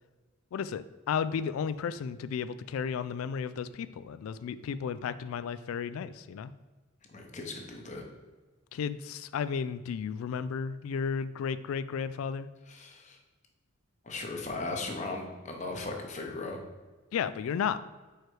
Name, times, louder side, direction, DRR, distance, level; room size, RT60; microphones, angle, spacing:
voice 1, 0.5-6.5 8.7-12.5 17.1-17.8, left 6 dB, 90° left, 15 dB, 0.3 m, -33 dB
voice 2, 7.1-8.0 12.7-13.2 14.0-16.6, left 3 dB, 35° left, 2 dB, 0.9 m, -37 dB
4.8 x 4.6 x 4.6 m, 1.3 s
head